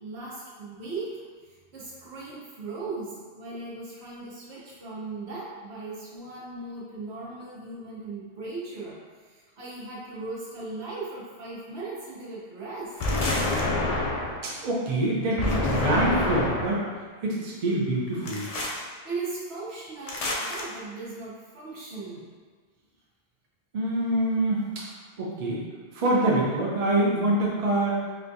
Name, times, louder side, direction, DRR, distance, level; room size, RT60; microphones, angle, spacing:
voice 1, 0.0-13.0 19.0-22.2, right 3 dB, 75° right, -6 dB, 1.1 m, -38 dB
sound 1, 13.0-14.5 15.4-16.8 18.3-18.8 20.1-20.6, left 2 dB, 50° left, 0.4 m, -27 dB
voice 2, 14.4-16.8 17.2-18.5 23.7-24.7 25.2-25.6 25.9-28.0, right 1 dB, 45° right, -5 dB, 0.6 m, -25 dB
4.3 x 2.3 x 2.6 m, 1.5 s
omnidirectional pair, 1.1 m